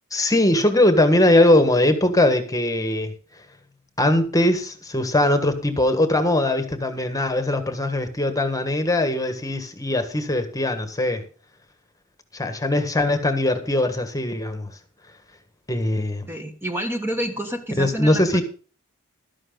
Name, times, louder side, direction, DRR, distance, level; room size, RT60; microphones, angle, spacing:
voice 1, 0.1-3.1 4.0-11.2 12.3-14.7 15.7-16.3 17.8-18.4, left 1 dB, 15° left, 1.5 m, -20 dB
voice 2, 16.3-18.4, equal, 10° right, 1.3 m, -28 dB
12.5 x 11.0 x 3.9 m
head